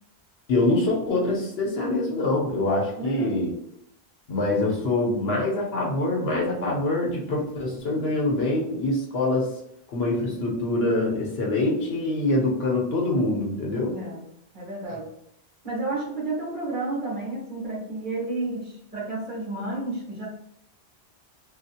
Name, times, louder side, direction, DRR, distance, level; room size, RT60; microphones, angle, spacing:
voice 1, 0.5-3.5 4.3-9.5 9.9-14.0, left 2 dB, 70° left, -2 dB, 1.1 m, -25 dB
voice 2, 3.0-3.4 13.9-14.3 14.5-15.1 15.6-20.3, right 2 dB, 50° right, -6 dB, 1.2 m, -31 dB
3.1 x 2.5 x 2.8 m, 0.72 s
omnidirectional pair, 1.1 m